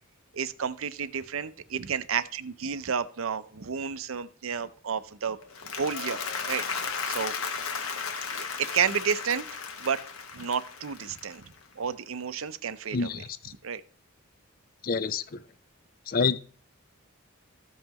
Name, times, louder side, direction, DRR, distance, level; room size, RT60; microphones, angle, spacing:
voice 1, 0.3-5.4 5.6-6.2 6.5-6.6 7.1-7.3 8.4-9.4 9.8-10.0 10.3-11.4 11.8-13.1 13.6-13.8, right 7 dB, 70° right, 13 dB, 0.6 m, -31 dB
Applause, 5.4-11.7, left 5 dB, 80° left, 1.2 m, -35 dB
voice 2, 12.9-13.5 14.8-15.4 16.1-16.4, left 5 dB, 45° left, 15 dB, 0.5 m, -28 dB
14.5 x 5.5 x 3.0 m, 0.43 s
head